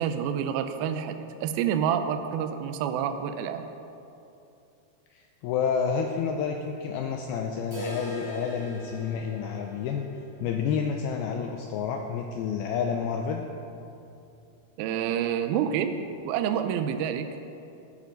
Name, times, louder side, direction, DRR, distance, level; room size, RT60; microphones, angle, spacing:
voice 1, 0.0-3.6 14.8-16.0 16.2-17.4, right 8 dB, 90° right, 8 dB, 2.1 m, -28 dB
voice 2, 5.1-10.0 10.4-13.4, left 6 dB, 85° left, 3 dB, 2.2 m, -29 dB
sound 1, 7.7-13.5 13.8-13.9 14.3-14.4 14.9-15.0 15.8-15.9, equal, 10° left, 2.0 m, -41 dB
11.5 x 10.5 x 5.2 m, 2.7 s
omnidirectional pair, 5.0 m